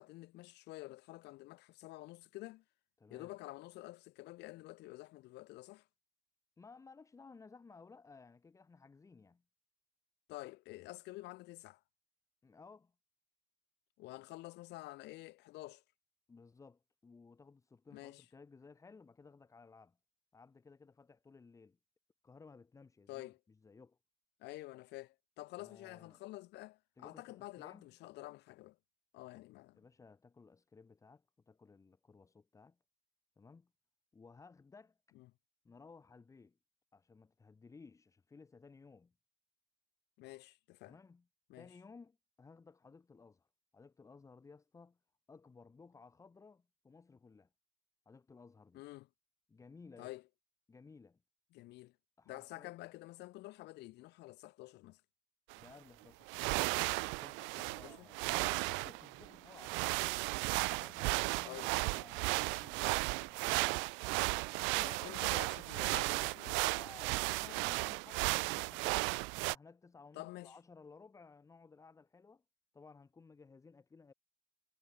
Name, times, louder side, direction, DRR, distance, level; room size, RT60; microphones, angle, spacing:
voice 1, 0.0-2.6 3.1-5.8 10.3-11.8 14.0-15.8 17.9-18.2 23.1-23.4 24.4-28.8 29.1-29.8 35.2-35.3 40.2-41.0 41.5-41.7 48.7-49.1 50.0-50.2 51.5-51.9 52.3-55.0 57.6-58.1 61.4-61.7 64.7-66.7 67.5-67.6 70.1-70.5, left 19 dB, 65° left, 3.4 m, -49 dB
voice 2, 3.0-3.3 6.6-9.4 12.4-12.9 16.3-20.0 20.3-21.8 22.2-24.0 25.6-26.2 27.0-27.9 29.8-32.8 33.4-33.7 34.1-35.0 35.6-36.6 36.9-39.1 40.8-41.3 41.6-43.5 43.7-45.0 45.3-47.5 48.1-48.8 49.5-50.1 50.7-51.2 52.2-52.7 55.6-56.5 56.9-60.0 60.6-63.7 66.6-69.1 69.3-72.4 72.7-74.1, left 4 dB, 15° left, 5.2 m, -58 dB
sound 1, 55.5-55.6 56.3-69.6, right 29 dB, 85° right, 1.3 m, -35 dB
cardioid pair, 160°, 19 cm